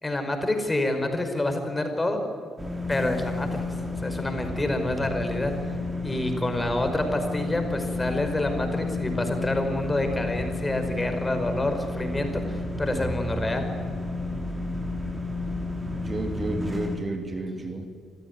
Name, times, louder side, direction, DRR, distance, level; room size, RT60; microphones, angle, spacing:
voice 1, 0.0-2.2 2.9-3.6 4.0-5.5 6.0-13.7, left 1 dB, 20° left, 6 dB, 5.0 m, -27 dB
sound 1, 2.6-17.0, left 2 dB, 15° right, 4.7 m, -31 dB
voice 2, 15.9-17.9, right 2 dB, 30° right, 5 dB, 2.8 m, -31 dB
26.0 x 15.0 x 9.7 m, 2.4 s
hypercardioid pair, 45°, 0 cm